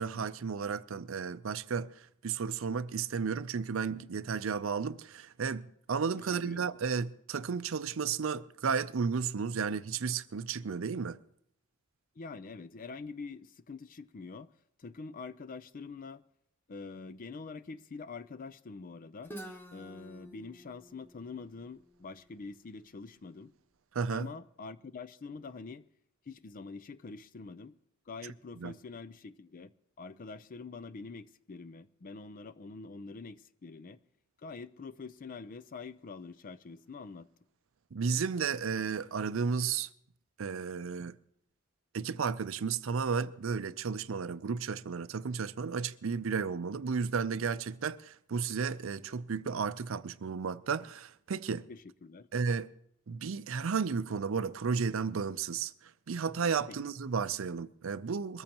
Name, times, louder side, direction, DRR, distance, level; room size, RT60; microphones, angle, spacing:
voice 1, 0.0-1.9 2.2-11.2 23.9-24.3 28.6-28.7 37.9-39.9 40.4-41.2 41.9-51.7 52.3-52.7 53.1-55.7 56.1-58.4, right 5 dB, 65° right, 0.5 m, -33 dB
voice 2, 6.1-6.7 12.2-14.5 14.8-16.2 16.7-19.3 19.7-23.5 24.1-25.9 26.3-27.7 28.1-29.7 30.0-34.0 34.4-37.3 51.7-52.3 56.7-56.8, left 4 dB, 40° left, 0.5 m, -45 dB
Guitar, 19.2-23.0, right 1 dB, 10° left, 1.0 m, -50 dB
22.5 x 14.0 x 2.9 m
head